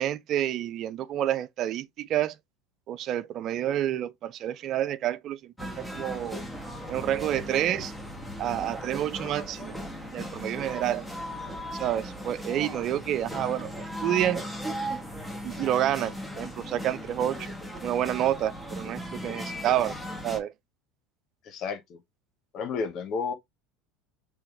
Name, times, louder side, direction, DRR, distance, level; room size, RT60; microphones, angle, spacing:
voice 1, 0.0-2.4 2.9-6.4 6.9-7.9 8.4-9.8 10.1-11.0 11.7-13.7 14.0-14.5 15.4-17.5 17.8-20.0 20.2-20.5, right 11 dB, 50° right, 0.4 m, -29 dB
sound 1, 5.6-20.4, equal, 5° left, 1.2 m, -37 dB
voice 2, 21.4-22.0 22.5-23.3, left 5 dB, 50° left, 1.0 m, -31 dB
3.5 x 3.4 x 3.0 m
hypercardioid pair, 75°, 0 cm